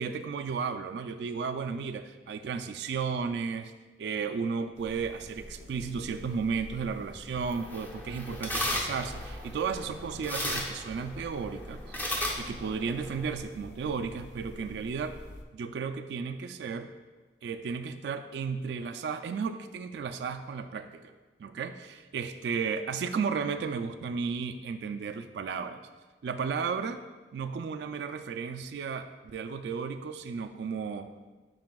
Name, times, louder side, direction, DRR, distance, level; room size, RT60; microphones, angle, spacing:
voice 1, 0.0-3.7 4.0-12.0 12.4-15.2 15.5-16.9 17.4-21.1 21.4-25.8 26.2-27.0 27.3-31.1, right 5 dB, 75° right, 8 dB, 0.3 m, -34 dB
sound 1, 4.7-15.4, left 1 dB, 80° left, 0.6 m, -47 dB
sound 2, 7.4-13.4, left 1 dB, 10° left, 0.5 m, -36 dB
9.3 x 4.8 x 2.3 m, 1.2 s
head